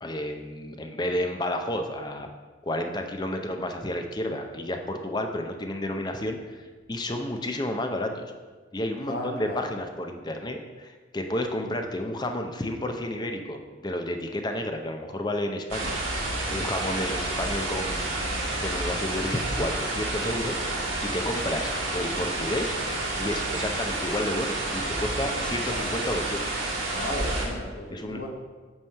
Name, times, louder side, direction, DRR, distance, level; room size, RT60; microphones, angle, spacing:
voice 1, 0.0-2.3 2.6-8.2 8.7-16.1 16.5-18.2 18.5-22.8 23.2-26.4 27.9-28.2, left 1 dB, 20° left, 5 dB, 0.5 m, -31 dB
voice 2, 9.0-9.7 26.9-28.3, equal, 50° left, 0 dB, 1.1 m, -34 dB
sound 1, 15.7-27.5, right 2 dB, 85° right, 1.6 m, -29 dB
8.8 x 3.0 x 6.5 m, 1.4 s
head